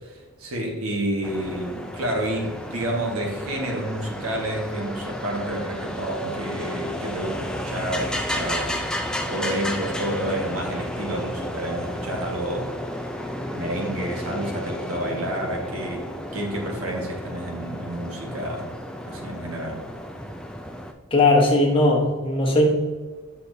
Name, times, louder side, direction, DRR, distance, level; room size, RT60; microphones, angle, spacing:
voice 1, 0.0-8.8 9.3-12.7 13.5-18.7 19.1-19.8, right 1 dB, 75° right, 0 dB, 1.5 m, -29 dB
sound 1, 1.2-20.9, equal, 5° left, 0.4 m, -32 dB
voice 2, 21.1-22.7, left 2 dB, 25° left, -1 dB, 1.1 m, -18 dB
8.0 x 5.7 x 2.7 m, 1.4 s
head